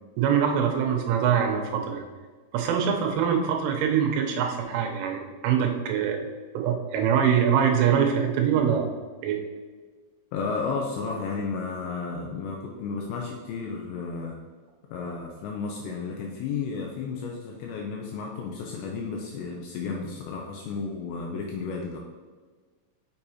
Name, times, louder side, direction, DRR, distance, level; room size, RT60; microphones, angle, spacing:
voice 1, 0.2-2.0 2.5-6.2 6.5-8.9 9.2-9.4, right 8 dB, 85° right, 2 dB, 3.2 m, -24 dB
voice 2, 10.3-14.4 14.9-22.0, left 4 dB, 85° left, 0 dB, 2.6 m, -33 dB
6.8 x 6.5 x 2.8 m, 1.4 s
omnidirectional pair, 5.6 m